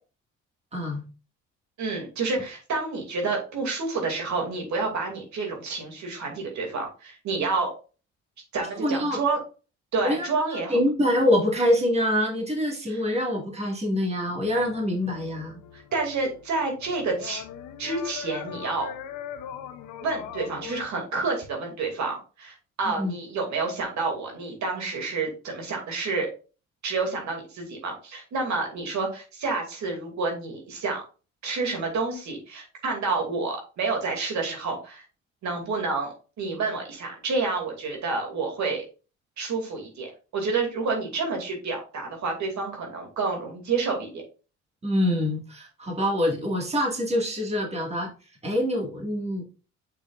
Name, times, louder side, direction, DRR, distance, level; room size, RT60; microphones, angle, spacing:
voice 1, 0.7-1.0 8.8-9.2 10.0-10.3 10.7-15.6 23.0-23.1 44.8-48.1 48.4-49.5, left 1 dB, 20° right, 0 dB, 2.0 m, -25 dB
voice 2, 1.8-7.7 8.5-9.4 9.9-10.8 12.9-13.0 15.7-17.4 17.8-18.9 20.0-26.3 26.8-31.0 31.4-35.0 35.4-38.8 39.4-44.2, right 4 dB, 70° right, 1 dB, 2.6 m, -29 dB
sound 1, 14.3-20.8, left 9 dB, 90° left, 0.8 m, -40 dB
6.7 x 6.4 x 2.5 m, 0.34 s
cardioid pair, 90°, 30 cm